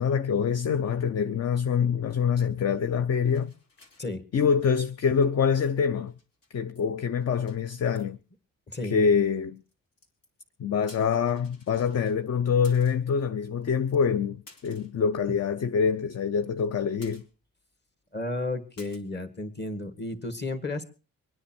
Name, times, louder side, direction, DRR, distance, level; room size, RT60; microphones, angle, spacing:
voice 1, 0.0-3.5 4.3-6.1 6.5-8.2 8.8-9.6 10.6-17.2, left 6 dB, 45° left, 0.7 m, -25 dB
sound 1, 3.2-4.5 4.8-5.3 5.6-5.7 6.0-6.9 7.1-7.6 8.0-8.1 8.8-8.9 9.6-10.4 10.8-12.2 12.6-13.1 13.6-13.7 13.9-14.0 14.5-15.0 15.4-15.5 15.8-15.9 16.2-16.7 17.0-17.6 17.9-18.0 18.8-19.0, left 3 dB, 75° left, 3.3 m, -55 dB
voice 2, 8.7-9.0 18.1-20.8, left 2 dB, 30° left, 2.0 m, -33 dB
24.5 x 9.9 x 4.5 m
cardioid pair, 125°, 34 cm